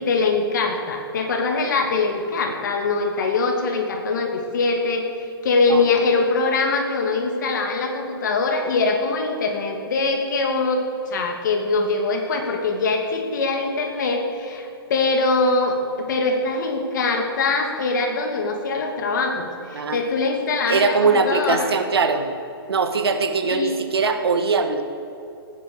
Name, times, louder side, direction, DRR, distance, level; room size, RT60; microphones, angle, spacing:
voice 1, 0.0-21.7 23.4-23.8, left 3 dB, 50° left, 3 dB, 2.9 m, -23 dB
voice 2, 20.7-22.2 22.7-24.8, right 4 dB, 75° right, 8 dB, 1.8 m, -21 dB
19.0 x 10.0 x 7.0 m, 2.8 s
hypercardioid pair, 160°, 13 cm